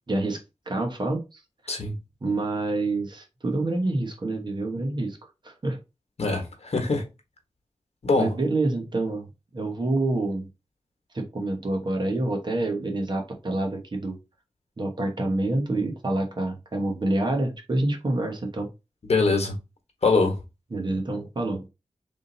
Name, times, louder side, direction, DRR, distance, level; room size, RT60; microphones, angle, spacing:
voice 1, 0.1-0.4 0.7-1.4 2.2-5.2 5.4-5.8 8.2-9.3 9.5-10.5 11.1-14.2 14.8-18.7 20.7-21.7, right 2 dB, 45° right, 1.2 m, -27 dB
voice 2, 6.2-7.0 8.0-8.3 19.0-19.6 20.0-20.4, left 3 dB, 70° left, 1.3 m, -23 dB
3.6 x 2.7 x 3.9 m
wide cardioid pair, 90°, 11 cm